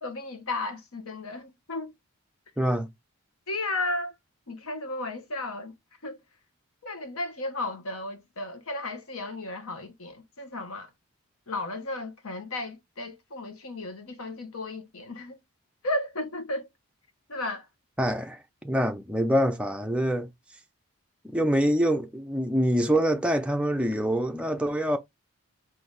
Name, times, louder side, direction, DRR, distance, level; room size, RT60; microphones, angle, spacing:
voice 1, 0.0-1.9 3.5-4.2 4.5-5.7 6.0-6.2 6.8-10.9 11.5-15.4 15.8-16.7 17.3-17.7, left 2 dB, 80° left, 1.0 m, -34 dB
voice 2, 2.6-2.9 18.0-20.3 21.2-25.0, equal, 5° right, 0.5 m, -25 dB
4.0 x 2.6 x 3.3 m
head